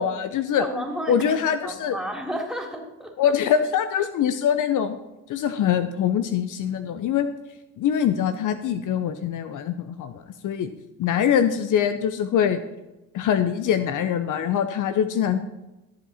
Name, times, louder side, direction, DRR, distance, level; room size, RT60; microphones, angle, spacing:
voice 1, 0.0-0.6 1.1-2.0 3.2-5.0 5.3-7.3 7.8-10.7 11.0-12.6 13.1-15.5, left 8 dB, 60° left, 10 dB, 0.8 m, -23 dB
voice 2, 0.6-3.3, equal, ahead, 1 dB, 3.1 m, -32 dB
14.0 x 7.4 x 4.2 m, 1.0 s
hypercardioid pair, 55°, 35 cm